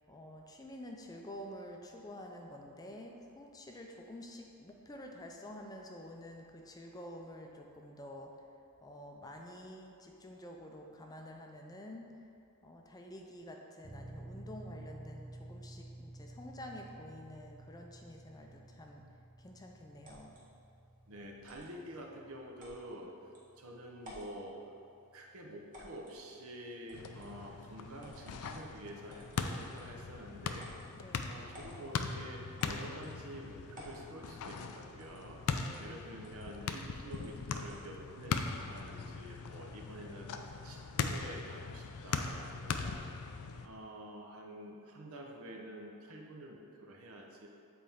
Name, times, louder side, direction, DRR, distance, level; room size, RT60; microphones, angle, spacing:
voice 1, 0.1-8.3 8.8-12.1 12.6-19.0 19.4-20.4 30.9-31.4 35.6-36.0, left 1 dB, 15° left, 1 dB, 0.4 m, -49 dB
sound 1, 13.8-28.3, right 1 dB, 15° right, 0.7 m, -53 dB
sound 2, 20.0-20.4 21.5-21.7 22.6-22.8 23.3-23.4 24.0-24.4 25.7-26.2 26.9-27.3 28.0-28.7 29.1-30.0 30.6-30.9 31.5-31.8 32.6-33.2 33.7-34.1 35.0-35.3 35.6-35.8 36.2-36.5 37.1-37.8, equal, 40° right, 1.4 m, -54 dB
voice 2, 21.1-23.2 23.6-24.6 25.1-35.4 35.8-43.0 43.6-47.5, right 1 dB, 70° right, 0 dB, 0.8 m, -48 dB
sound 3, 26.9-43.7, left 5 dB, 80° left, 0.4 m, -40 dB
7.5 x 4.3 x 3.6 m, 2.5 s
head